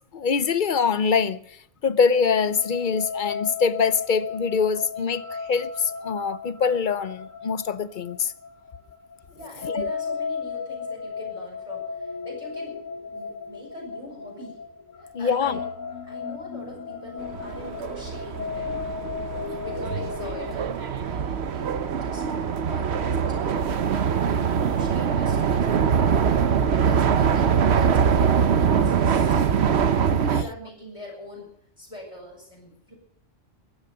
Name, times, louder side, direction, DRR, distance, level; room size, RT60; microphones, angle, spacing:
voice 1, 0.1-1.4 1.8-5.2 5.5-8.3 9.6-9.9 15.1-15.6, left 5 dB, 50° left, 0.7 m, -24 dB
sound 1, 2.1-20.5, left 6 dB, 85° left, 1.6 m, -35 dB
voice 2, 9.3-14.6 15.0-15.7 16.1-19.0 19.6-22.3 22.6-29.8 30.2-31.5 31.8-32.9, equal, 25° left, 6.5 m, -42 dB
sound 2, 17.2-30.4, right 7 dB, 60° right, 1.1 m, -23 dB
16.0 x 12.0 x 6.7 m
omnidirectional pair, 1.3 m